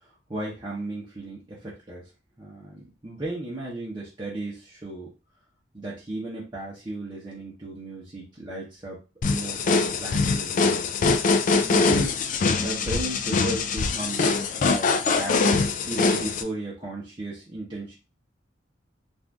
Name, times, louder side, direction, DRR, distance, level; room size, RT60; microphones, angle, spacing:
voice 1, 0.3-2.1 2.4-5.1 5.7-10.8 11.6-14.3 14.7-15.4 15.9-18.0, right 2 dB, 25° right, -6 dB, 0.8 m, -35 dB
sound 1, 9.2-16.4, left 4 dB, 40° left, 0.3 m, -23 dB
2.6 x 2.5 x 3.4 m, 0.30 s
head